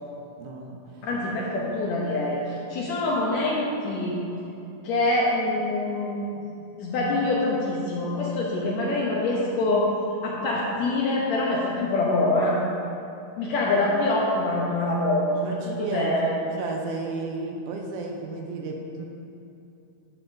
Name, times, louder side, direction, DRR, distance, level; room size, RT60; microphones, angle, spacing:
voice 1, 0.4-1.1 15.4-19.1, right 3 dB, 80° right, 2 dB, 2.0 m, -33 dB
voice 2, 1.0-4.2 4.8-6.3 6.8-9.9 10.2-12.6 13.4-16.3, left 2 dB, 75° left, -4 dB, 1.7 m, -25 dB
9.3 x 6.8 x 2.6 m, 2.7 s
omnidirectional pair, 3.7 m